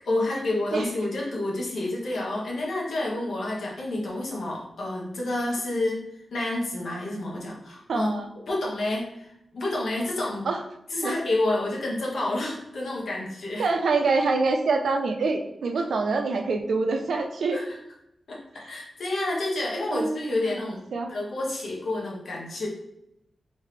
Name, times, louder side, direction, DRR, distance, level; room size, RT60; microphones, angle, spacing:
voice 1, 0.0-6.0 6.3-10.5 10.9-13.7 17.5-17.8 18.3-18.4 18.6-20.8 21.1-22.7, left 2 dB, 75° left, -3 dB, 1.2 m, -29 dB
voice 2, 7.9-8.3 10.5-10.6 11.0-11.1 13.6-17.6 19.9-21.1, right 3 dB, 90° right, 4 dB, 0.5 m, -26 dB
3.6 x 3.2 x 3.3 m, 0.82 s
wide cardioid pair, 110°, 0 cm